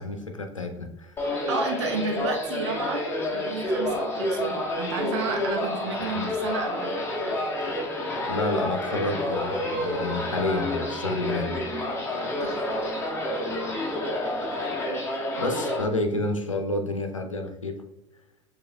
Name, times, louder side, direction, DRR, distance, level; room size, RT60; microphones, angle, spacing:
voice 1, 0.0-1.3 6.1-6.3 8.3-11.6 15.4-17.8, left 2 dB, 85° left, 6 dB, 0.6 m, -29 dB
sound 1, 1.2-15.8, left 1 dB, 15° left, 1.3 m, -29 dB
voice 2, 1.3-7.0 12.2-12.8, right 4 dB, 65° right, 2 dB, 0.9 m, -32 dB
6.7 x 3.4 x 2.3 m, 0.97 s
figure-of-eight pair, 75°, 16 cm